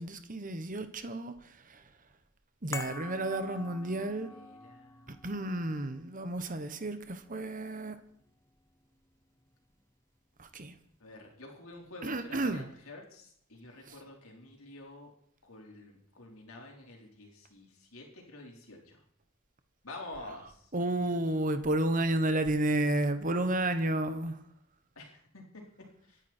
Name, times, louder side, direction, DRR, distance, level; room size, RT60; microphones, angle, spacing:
voice 1, 0.0-1.8 2.6-4.3 5.1-8.0 10.4-10.7 12.0-12.7 20.7-24.4, right 1 dB, 40° right, 1.3 m, -31 dB
sound 1, 2.7-9.1 9.4-9.5, left 3 dB, 15° left, 0.7 m, -47 dB
voice 2, 3.9-5.1 11.0-15.1 15.4-19.0 19.8-20.7 25.0-25.4 26.0-26.2, left 2 dB, 80° left, 4.3 m, -49 dB
26.5 x 10.5 x 4.5 m
head